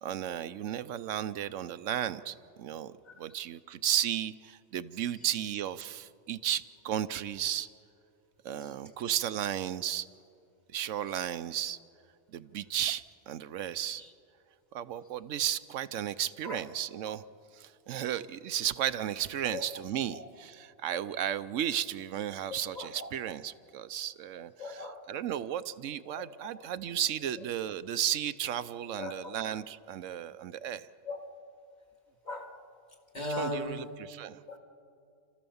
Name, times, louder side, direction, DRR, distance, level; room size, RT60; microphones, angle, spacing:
voice 1, 0.0-7.7 8.4-10.1 10.7-11.8 12.3-14.0 14.7-17.2 17.5-30.9 33.2-34.4, right 10 dB, 85° right, 1.0 m, -34 dB
voice 2, 22.7-23.1 24.6-25.1 26.5-26.7 29.0-29.4 31.1-31.3 32.2-32.6 33.1-34.2 34.5-34.6, left 2 dB, 35° left, 2.3 m, -38 dB
30.0 x 14.0 x 7.1 m
omnidirectional pair, 1.3 m